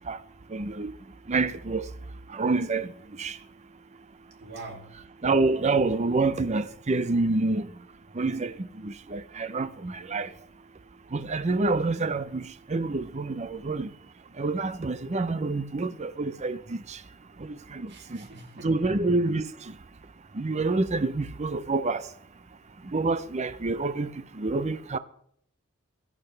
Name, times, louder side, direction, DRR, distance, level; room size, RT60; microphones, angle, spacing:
voice 1, 0.5-0.9 1.3-1.9 2.3-3.4 5.2-7.7 8.1-10.3 11.1-13.9 14.4-17.0 17.4-18.3 18.6-19.7 20.3-22.1 22.8-25.0, right 3 dB, 35° right, 0.6 m, -27 dB
voice 2, 4.4-5.0 17.9-18.9, right 2 dB, 55° right, 2.8 m, -44 dB
17.5 x 13.5 x 3.3 m
head